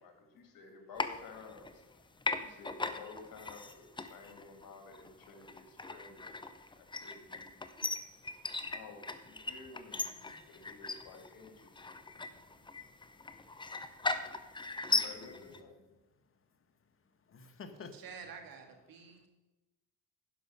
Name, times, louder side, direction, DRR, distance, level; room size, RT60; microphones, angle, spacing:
voice 1, 0.0-1.8 2.4-6.5 6.8-7.5 8.7-10.0 10.5-12.0 14.0-14.3 14.8-15.9, left 4 dB, 65° left, 4 dB, 2.3 m, -52 dB
sound 1, 0.9-1.9 2.2-15.6, left 3 dB, 15° left, 0.7 m, -38 dB
voice 2, 10.0-10.5 17.6-19.3, right 6 dB, 65° right, 4 dB, 1.9 m, -51 dB
voice 3, 11.9-12.4 12.9-13.1 13.4-13.6 15.1-15.5 17.3-18.1, left 4 dB, 35° left, 8 dB, 1.2 m, -53 dB
10.5 x 5.5 x 6.4 m, 1.1 s
supercardioid pair, 80°, 37 cm